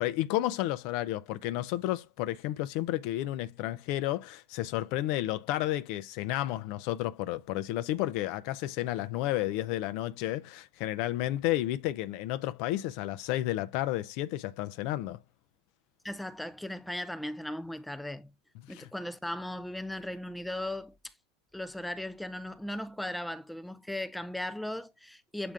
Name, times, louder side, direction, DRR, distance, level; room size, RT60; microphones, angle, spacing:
voice 1, 0.0-15.2 18.7-18.9, left 15 dB, 50° left, 0.6 m, -32 dB
voice 2, 16.0-18.3 18.7-21.1 21.5-25.5, left 1 dB, 5° left, 0.5 m, -37 dB
7.7 x 3.6 x 3.4 m
figure-of-eight pair, 80°, 0 cm